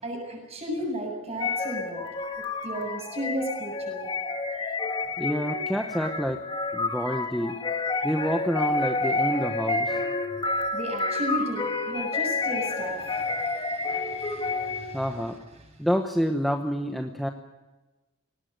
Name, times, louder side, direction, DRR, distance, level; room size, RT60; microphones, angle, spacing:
voice 1, 0.0-2.0 2.6-4.1 10.7-15.0, right 1 dB, 30° right, 1 dB, 7.6 m, -34 dB
sound 1, 1.4-15.0, left 3 dB, 25° left, 1.9 m, -29 dB
voice 2, 5.2-6.4 6.7-7.6 8.0-10.0 14.9-15.4 15.8-17.3, equal, ahead, 4 dB, 1.0 m, -28 dB
20.0 x 18.5 x 9.3 m, 1.2 s
head